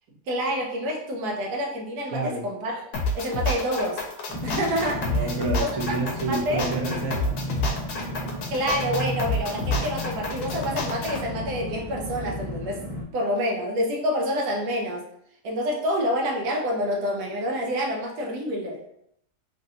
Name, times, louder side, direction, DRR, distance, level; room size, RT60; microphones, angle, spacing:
voice 1, 0.3-2.8 3.1-4.0 4.4-5.3 5.6-5.7 6.2-6.6 8.5-12.8 13.1-15.0 15.4-18.8, equal, 85° right, 0 dB, 1.2 m, -27 dB
voice 2, 2.1-2.4 5.0-7.3, right 2 dB, 60° right, 0 dB, 0.8 m, -29 dB
sound 1, 2.9-11.2, left 2 dB, 80° left, 1.1 m, -29 dB
sound 2, 4.3-13.0, equal, 10° left, 0.5 m, -33 dB
3.1 x 2.6 x 2.7 m, 0.72 s
omnidirectional pair, 1.7 m